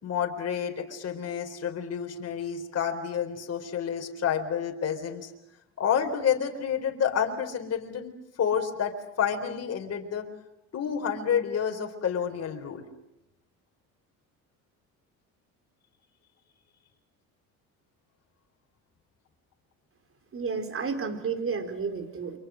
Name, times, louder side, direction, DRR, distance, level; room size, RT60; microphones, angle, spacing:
voice 1, 0.0-5.3 5.8-8.1 8.4-10.2 10.7-12.8, left 8 dB, 45° left, 3 dB, 4.1 m, -29 dB
voice 2, 20.3-22.4, right 5 dB, 40° right, 8 dB, 4.3 m, -31 dB
29.5 x 25.0 x 6.4 m, 0.88 s
supercardioid pair, 85°, 35 cm